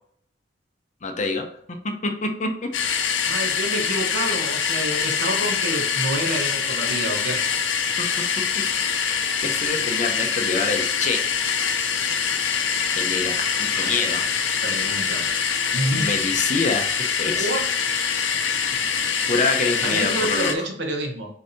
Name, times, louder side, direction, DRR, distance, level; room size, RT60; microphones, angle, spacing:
voice 1, 1.0-1.5 2.0-2.7 3.4-3.6 7.8-8.1 9.0-11.2 12.9-14.3 15.9-17.5 18.7-18.8 19.3-20.7, left 3 dB, 40° left, 5 dB, 0.6 m, -26 dB
sound 1, 2.7-20.5, left 7 dB, 80° left, 0.6 m, -24 dB
voice 2, 3.3-7.6 13.7-13.9 14.6-15.3 15.7-16.1 17.3-17.9 19.8-21.3, right 1 dB, 70° right, 2 dB, 1.0 m, -28 dB
6.7 x 2.8 x 2.7 m, 0.65 s
head